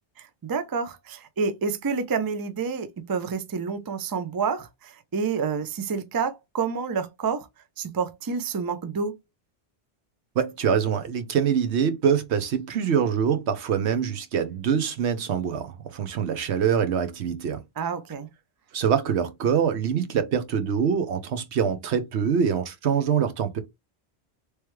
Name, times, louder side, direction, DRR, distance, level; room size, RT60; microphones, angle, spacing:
voice 1, 0.2-7.5 7.8-9.2 17.8-18.3, right 5 dB, 35° right, 0.4 m, -29 dB
voice 2, 10.4-17.6 18.7-23.6, right 7 dB, 85° right, 1.0 m, -24 dB
3.3 x 3.2 x 3.1 m
omnidirectional pair, 1.1 m